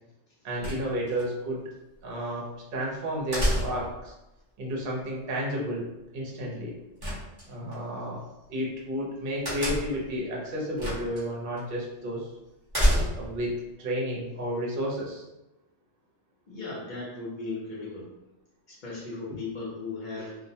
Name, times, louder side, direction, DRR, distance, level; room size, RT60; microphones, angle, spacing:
voice 1, 0.4-1.6 2.0-4.1 4.6-6.8 7.4-8.2 8.5-12.3 13.1-15.2, equal, 55° right, -3 dB, 0.8 m, -32 dB
sound 1, 0.6-1.2 3.3-4.0 7.0-7.8 9.4-10.1 10.8-11.2 11.6-11.7 12.7-13.4, equal, 25° right, 0.7 m, -27 dB
voice 2, 16.5-18.1 18.7-20.4, left 3 dB, 50° left, -5 dB, 0.6 m, -37 dB
2.3 x 2.1 x 2.7 m, 0.99 s
omnidirectional pair, 1.3 m